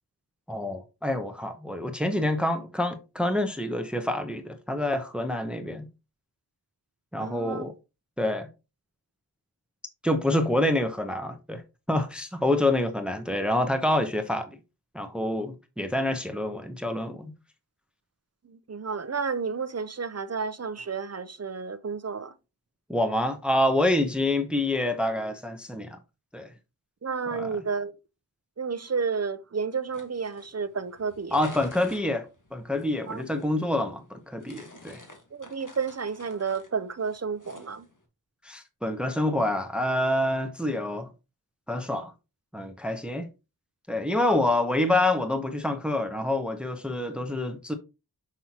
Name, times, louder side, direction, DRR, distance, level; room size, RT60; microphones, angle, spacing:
voice 1, 0.5-5.9 7.1-7.7 8.2-8.5 10.0-11.6 11.9-14.6 14.9-17.3 22.9-26.0 26.3-26.5 27.3-27.5 31.3-35.0 38.4-41.1 41.7-42.1 42.5-43.3 43.9-47.7, left 1 dB, 5° right, 0.8 m, -27 dB
voice 2, 7.2-7.7 18.4-22.3 27.0-27.9 28.6-31.4 33.1-33.3 35.3-37.9, right 5 dB, 40° right, 0.6 m, -31 dB
sound 1, 29.9-38.0, left 2 dB, 50° left, 1.6 m, -51 dB
6.1 x 5.4 x 2.9 m
wide cardioid pair, 40°, 39 cm